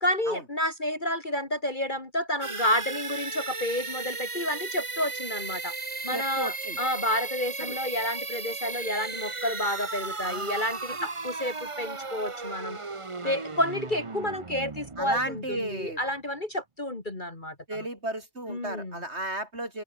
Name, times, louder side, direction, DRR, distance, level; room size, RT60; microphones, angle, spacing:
voice 1, 0.0-5.7 6.0-12.8 13.2-17.8 18.5-19.0, left 1 dB, 30° left, 2.8 m, -30 dB
sound 1, 2.4-16.1, right 3 dB, 20° right, 1.1 m, -36 dB
voice 2, 6.1-6.8 7.6-7.8 10.2-10.6 10.9-11.0 13.2-13.4 15.0-16.0 17.7-19.8, right 1 dB, 40° right, 6.7 m, -34 dB
omnidirectional pair, 1.7 m